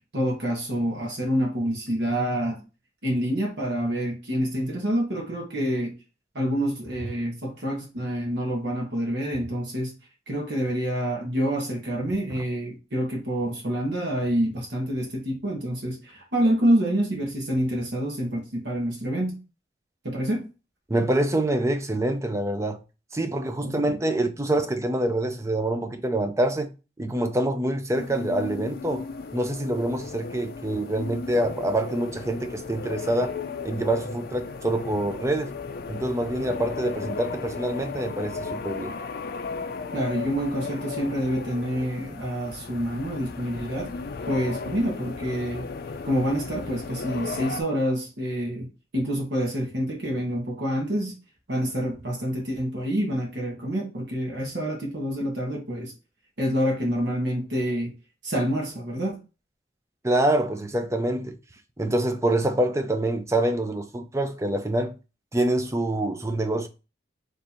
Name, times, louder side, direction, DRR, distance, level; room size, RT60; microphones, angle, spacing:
voice 1, 0.1-2.6 3.0-5.9 6.3-9.9 10.3-19.4 20.0-20.4 23.6-24.0 39.9-43.9 44.3-45.7 46.0-51.2 51.5-55.9 56.4-57.9 58.2-59.2, equal, 65° right, 1.3 m, -27 dB
voice 2, 20.9-22.8 23.1-29.0 29.3-33.3 33.6-35.5 35.9-39.0 60.0-61.4 61.8-65.0 65.3-66.7, right 1 dB, 15° right, 0.5 m, -26 dB
sound 1, 27.9-47.6, left 4 dB, 55° left, 0.4 m, -35 dB
3.3 x 2.7 x 4.4 m
head